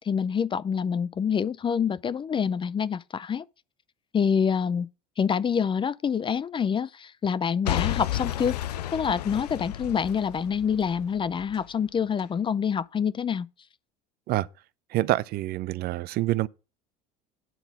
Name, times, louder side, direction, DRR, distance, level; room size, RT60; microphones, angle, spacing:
voice 1, 0.1-3.4 4.1-4.9 5.2-8.6 8.9-13.5, left 7 dB, 25° left, 0.4 m, -26 dB
Boom / Shatter / Crushing, 7.6-11.7 12.2-12.3, left 12 dB, 90° left, 0.4 m, -32 dB
voice 2, 14.9-16.5, right 17 dB, 50° right, 0.5 m, -26 dB
9.1 x 4.0 x 7.1 m
hypercardioid pair, 75°, 20 cm